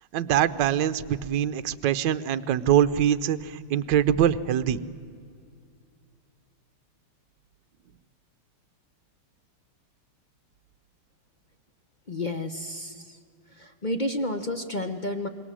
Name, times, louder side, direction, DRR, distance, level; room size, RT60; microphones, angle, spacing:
voice 1, 0.1-4.8, right 10 dB, 65° right, 12 dB, 1.3 m, -23 dB
voice 2, 12.1-13.2 13.5-15.3, left 1 dB, 40° left, 8 dB, 0.6 m, -31 dB
27.0 x 22.5 x 7.5 m, 2.3 s
omnidirectional pair, 2.4 m